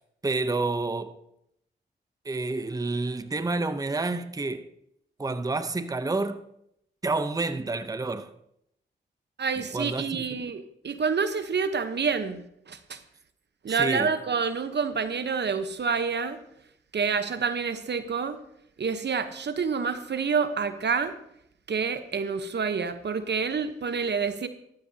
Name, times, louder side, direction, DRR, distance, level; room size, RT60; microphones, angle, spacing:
voice 1, 0.2-1.2 2.2-4.7 5.2-6.4 7.0-8.3 9.6-10.3 13.8-14.1, right 3 dB, 20° right, 0.7 m, -29 dB
voice 2, 9.4-13.0 13.6-16.4 16.9-18.4 18.8-21.1 21.7-24.5, right 5 dB, 60° right, 1.0 m, -28 dB
13.0 x 12.5 x 2.8 m
supercardioid pair, 40°, 20 cm